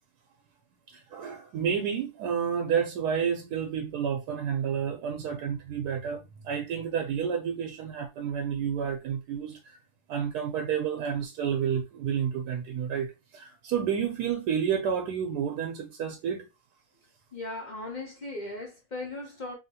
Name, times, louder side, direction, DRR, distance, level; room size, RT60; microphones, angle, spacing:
voice 1, 0.9-9.8 10.1-16.5, right 7 dB, 85° right, 1.2 m, -30 dB
voice 2, 17.3-19.6, left 2 dB, 45° left, 0.6 m, -37 dB
2.8 x 2.8 x 2.7 m
omnidirectional pair, 1.7 m